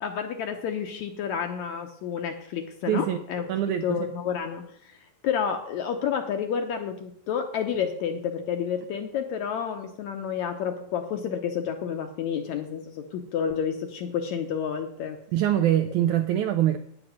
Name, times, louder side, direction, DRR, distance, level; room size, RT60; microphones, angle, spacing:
voice 1, 0.0-3.5 3.8-5.0 5.2-15.2, left 7 dB, 75° left, 1.8 m, -30 dB
voice 2, 2.8-3.2 3.5-4.1 15.3-16.8, right 11 dB, 80° right, 1.7 m, -24 dB
9.7 x 7.7 x 7.5 m
omnidirectional pair, 4.1 m